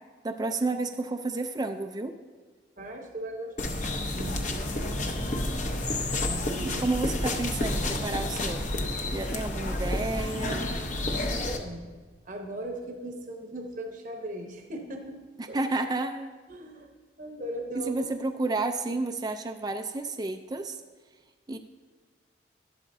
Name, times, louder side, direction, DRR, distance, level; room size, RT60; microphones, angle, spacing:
voice 1, 0.2-2.1 6.6-8.6 9.1-10.6 15.4-16.3 17.8-20.8 21.5-21.6, right 2 dB, 20° right, 6 dB, 0.4 m, -31 dB
voice 2, 2.8-3.9 4.1-5.3 6.2-6.9 11.2-11.9 12.3-15.2 15.5-15.6 16.5-16.9 17.2-18.1, right 1 dB, 45° right, 2 dB, 0.9 m, -39 dB
sound 1, 3.6-11.6, left 1 dB, 40° left, 0.8 m, -30 dB
11.5 x 11.5 x 2.6 m, 1.4 s
head